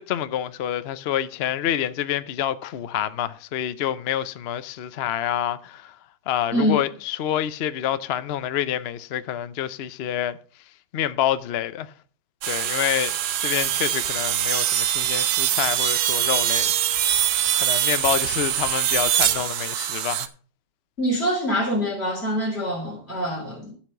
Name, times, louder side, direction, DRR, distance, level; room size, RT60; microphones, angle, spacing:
voice 1, 0.0-6.0 6.3-10.4 10.9-11.9 12.5-13.2 13.4-17.1 17.5-20.3, left 11 dB, 70° left, 0.5 m, -27 dB
voice 2, 6.5-6.8 21.0-23.7, equal, 35° left, 3.3 m, -25 dB
sound 1, 12.4-20.3, right 11 dB, 65° right, 1.1 m, -23 dB
12.0 x 5.1 x 6.5 m
omnidirectional pair, 2.0 m